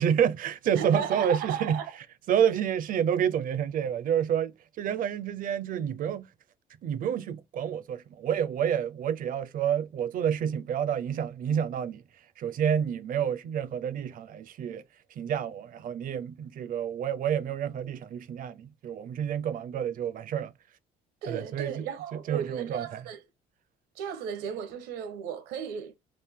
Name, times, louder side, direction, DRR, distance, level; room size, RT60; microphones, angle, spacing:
voice 1, 0.0-1.8 2.3-6.3 6.8-12.0 12.4-14.8 15.2-20.5 21.3-23.1, right 8 dB, 55° right, 0.5 m, -29 dB
voice 2, 0.7-1.9 21.2-23.2 24.0-26.0, right 8 dB, 90° right, 0.9 m, -35 dB
3.4 x 2.5 x 3.5 m
cardioid pair, 110°, 17 cm